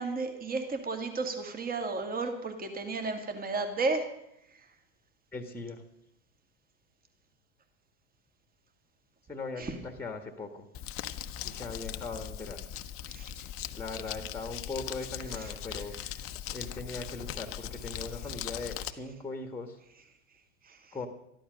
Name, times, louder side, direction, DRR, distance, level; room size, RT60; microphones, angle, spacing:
voice 1, 0.0-4.0 9.6-9.7 13.1-13.2, right 3 dB, 25° right, 6 dB, 2.1 m, -32 dB
voice 2, 5.3-5.8 9.3-10.7 11.4-12.6 13.8-15.9 16.5-19.8 20.9-21.1, left 3 dB, 5° left, 6 dB, 1.5 m, -39 dB
Crumpling crinkling, 10.7-18.9, left 10 dB, 40° left, 0.8 m, -40 dB
13.5 x 11.5 x 6.4 m, 0.79 s
hypercardioid pair, 105°, 34 cm